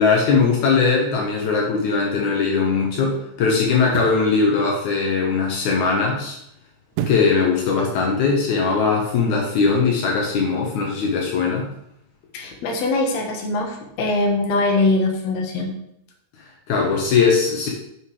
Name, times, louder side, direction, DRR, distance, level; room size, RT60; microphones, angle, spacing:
voice 1, 0.0-6.4 7.1-11.7 16.7-17.7, left 5 dB, 85° left, -1 dB, 1.6 m, -20 dB
sound 1, 3.8-4.3 6.9-7.4 7.8-7.9, right 10 dB, 80° right, 2.8 m, -28 dB
voice 2, 12.3-15.7, left 2 dB, 70° left, 1 dB, 1.6 m, -22 dB
7.9 x 5.9 x 4.8 m, 0.76 s
omnidirectional pair, 5.2 m